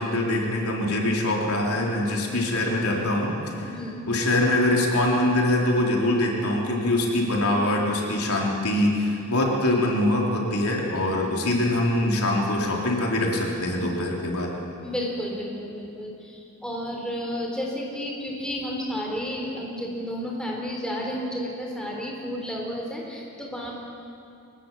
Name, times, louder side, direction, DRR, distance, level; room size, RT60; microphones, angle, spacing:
voice 1, 0.0-3.7 4.1-14.5, left 1 dB, 85° left, -1 dB, 4.0 m, -23 dB
voice 2, 3.6-4.0 14.8-23.7, equal, 5° left, -2 dB, 3.9 m, -32 dB
23.5 x 20.0 x 7.5 m, 2.6 s
head